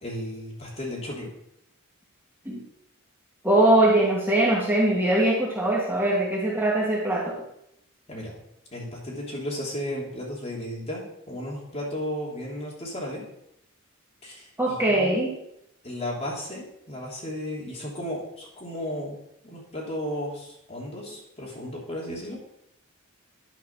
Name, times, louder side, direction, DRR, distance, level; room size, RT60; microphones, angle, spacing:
voice 1, 0.0-1.3 8.1-8.3 8.7-13.2 14.2-15.2 15.8-19.2 19.4-22.4, left 1 dB, 30° left, -4 dB, 3.2 m, -34 dB
voice 2, 3.4-7.4 14.6-15.4, right 1 dB, 10° right, -4 dB, 1.9 m, -22 dB
10.5 x 5.6 x 6.0 m, 0.77 s
head